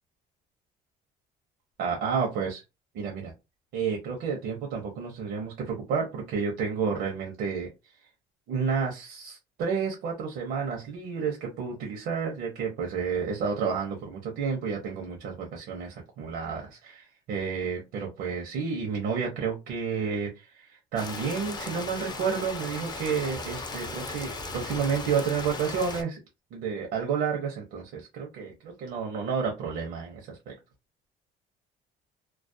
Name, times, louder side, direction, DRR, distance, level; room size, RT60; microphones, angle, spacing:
voice 1, 1.8-2.6 2.9-3.3 3.7-7.7 8.5-26.2 26.5-30.5, right 6 dB, 80° right, 0.7 m, -31 dB
Rain, 21.0-26.0, left 3 dB, 25° left, 0.5 m, -37 dB
2.3 x 2.0 x 2.6 m
cardioid pair, 110°, 17 cm